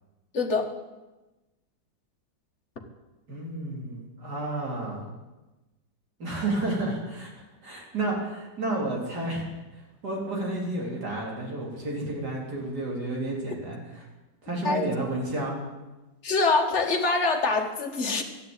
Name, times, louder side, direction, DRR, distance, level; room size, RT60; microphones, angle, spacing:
voice 1, 0.3-0.7 14.6-14.9 16.2-18.2, left 3 dB, 35° left, 3 dB, 1.8 m, -24 dB
voice 2, 3.3-5.0 6.2-9.4 9.7-14.0 14.4-15.6, right 2 dB, 55° right, -1 dB, 4.2 m, -31 dB
13.0 x 10.0 x 8.9 m, 1.1 s
omnidirectional pair, 2.1 m